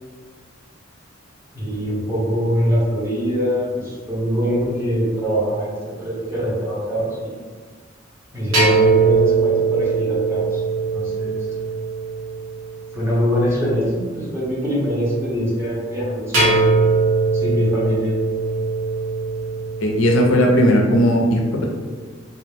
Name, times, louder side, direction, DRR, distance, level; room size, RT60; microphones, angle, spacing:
voice 1, 1.5-7.4 8.3-10.6 10.9-11.4 12.9-16.6 17.3-18.1, equal, 10° right, -8 dB, 0.8 m, -23 dB
sound 1, 8.5-12.8 16.3-20.2, right 3 dB, 85° right, 0.8 m, -20 dB
voice 2, 19.8-21.6, equal, 75° left, 1 dB, 0.4 m, -16 dB
2.4 x 2.1 x 3.2 m, 1.5 s
head